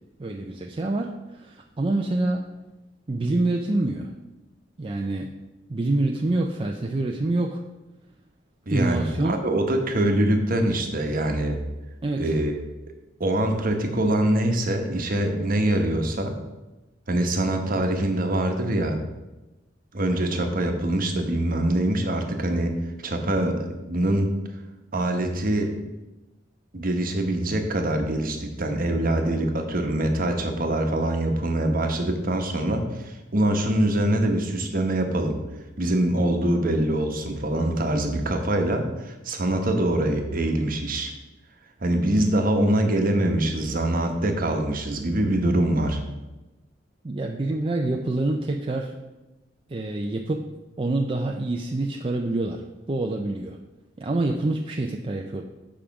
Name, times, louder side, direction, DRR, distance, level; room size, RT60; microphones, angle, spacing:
voice 1, 0.2-2.5 3.1-4.1 4.8-5.3 5.7-7.6 8.7-9.4 12.0-12.3 47.0-49.0 49.7-50.5 50.8-53.6 54.0-55.4, right 2 dB, 30° right, 2 dB, 0.5 m, -26 dB
voice 2, 8.7-11.6 12.2-12.7 13.2-16.4 17.1-19.0 19.9-22.7 23.0-24.3 24.9-25.8 26.7-35.4 35.8-41.1 41.8-46.0, right 1 dB, 50° right, 5 dB, 1.1 m, -24 dB
7.2 x 5.0 x 5.8 m, 1.1 s
head